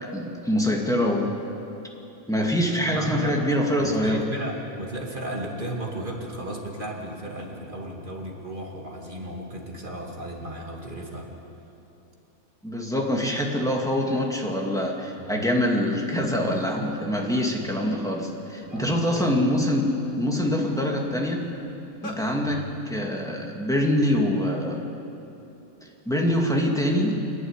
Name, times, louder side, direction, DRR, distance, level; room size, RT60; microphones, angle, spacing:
voice 1, 0.1-1.3 2.3-4.2 12.6-19.9 20.1-21.4 22.0-22.6 22.9-24.8 25.8-27.2, left 1 dB, ahead, -1 dB, 2.4 m, -24 dB
voice 2, 2.9-3.4 3.8-11.3 15.2-15.4 18.7-19.4 22.4-22.7, right 1 dB, 35° right, -1 dB, 2.5 m, -35 dB
sound 1, 16.1-16.2 16.5-16.9 17.4-18.9 19.5-19.7 20.0-22.2, left 2 dB, 35° left, 1.8 m, -41 dB
27.5 x 11.0 x 10.0 m, 2.9 s
omnidirectional pair, 1.5 m